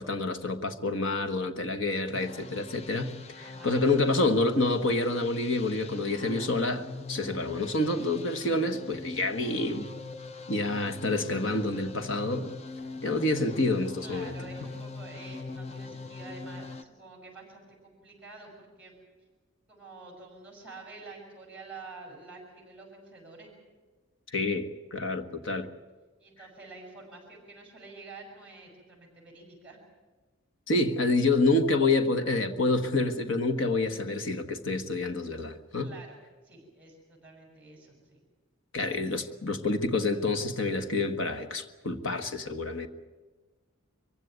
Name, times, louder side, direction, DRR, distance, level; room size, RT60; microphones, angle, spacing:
voice 1, 0.0-9.9 10.5-12.5 13.0-14.3 24.3-25.7 30.7-35.9 38.7-42.9, left 2 dB, 65° left, 1.4 m, -28 dB
sound 1, 2.1-16.8, left 3 dB, 30° left, 0.6 m, -42 dB
voice 2, 3.4-3.8 14.0-18.9 19.7-23.5 26.2-29.8 35.8-36.2 36.4-38.2, right 3 dB, 5° right, 7.0 m, -48 dB
23.5 x 16.0 x 9.4 m
head